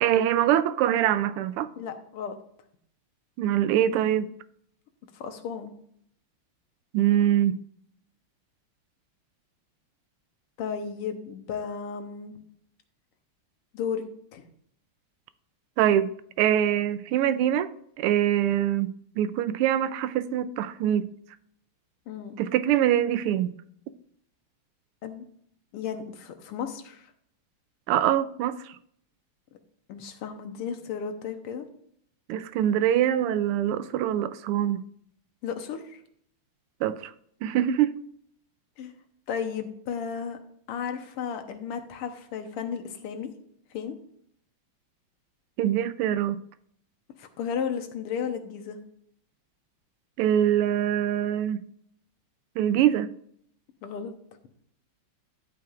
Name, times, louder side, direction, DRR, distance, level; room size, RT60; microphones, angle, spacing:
voice 1, 0.0-1.7 3.4-4.3 6.9-7.6 15.8-17.7 18.0-21.1 22.4-23.5 27.9-28.7 32.3-34.8 36.8-37.1 37.4-37.9 45.6-46.4 50.2-51.6 52.6-53.1, right 11 dB, 85° right, 1.5 m, -24 dB
voice 2, 1.8-2.3 5.1-5.7 10.6-12.3 13.7-14.0 14.3-14.5 22.1-22.4 25.0-25.2 25.7-27.1 29.9-31.7 35.4-36.0 38.8-38.9 39.3-40.4 40.7-43.3 43.7-44.0 47.2-48.8 53.8-54.1, left 7 dB, 90° left, 1.9 m, -34 dB
12.0 x 8.4 x 2.4 m
omnidirectional pair, 2.4 m